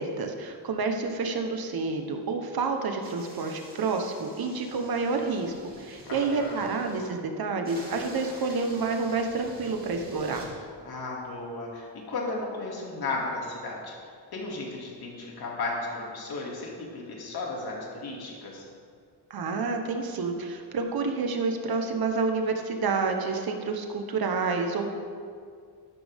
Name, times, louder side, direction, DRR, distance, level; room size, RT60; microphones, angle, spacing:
voice 1, 0.0-10.5 19.3-24.9, right 4 dB, 55° right, 4 dB, 1.2 m, -29 dB
sound 1, 3.0-7.1 7.6-10.5, right 1 dB, 20° right, 2.6 m, -47 dB
voice 2, 6.1-6.7 10.8-13.9 14.3-18.6, left 3 dB, 55° left, -3 dB, 2.6 m, -34 dB
13.0 x 12.0 x 3.6 m, 2.2 s
wide cardioid pair, 165°, 44 cm